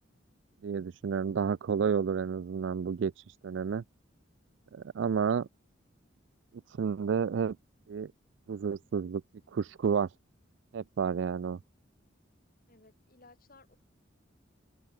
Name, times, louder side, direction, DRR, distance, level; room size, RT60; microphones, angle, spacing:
voice 1, 0.6-3.1 3.4-3.8 4.7-5.5 6.8-7.6 7.9-8.1 8.5-9.2 9.5-10.1 10.7-11.6, right 6 dB, 70° right, 0.4 m, -30 dB
voice 2, 12.7-13.8, left 3 dB, 50° left, 3.3 m, -59 dB
open air
head